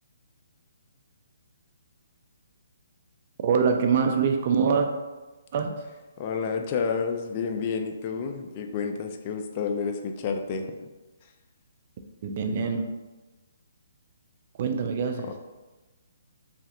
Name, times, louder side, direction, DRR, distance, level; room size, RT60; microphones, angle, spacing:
voice 1, 3.4-4.9 5.5-5.9 12.2-12.9 14.6-15.3, right 6 dB, 45° right, 5 dB, 0.3 m, -24 dB
voice 2, 6.2-10.7 15.2-15.3, left 5 dB, 35° left, 5 dB, 0.3 m, -30 dB
3.1 x 2.4 x 2.8 m, 1.2 s
hypercardioid pair, 150°, 0 cm